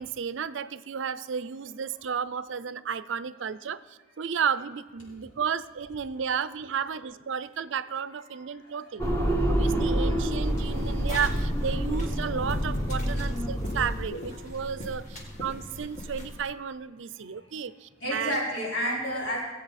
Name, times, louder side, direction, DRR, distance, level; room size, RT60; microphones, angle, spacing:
voice 1, 0.0-9.1 9.5-18.4, right 7 dB, 65° right, 15 dB, 0.5 m, -33 dB
voice 2, 5.1-5.4 8.3-9.6 10.1-10.3 11.0-11.1 13.7-13.8 14.1-14.7 17.2-17.6 18.0-19.4, equal, 75° left, -6 dB, 4.7 m, -34 dB
sound 1, 9.0-14.0, right 1 dB, 15° left, 1.3 m, -27 dB
sound 2, 10.4-16.4, equal, 35° left, 2.1 m, -40 dB
18.5 x 8.1 x 4.2 m, 1.3 s
head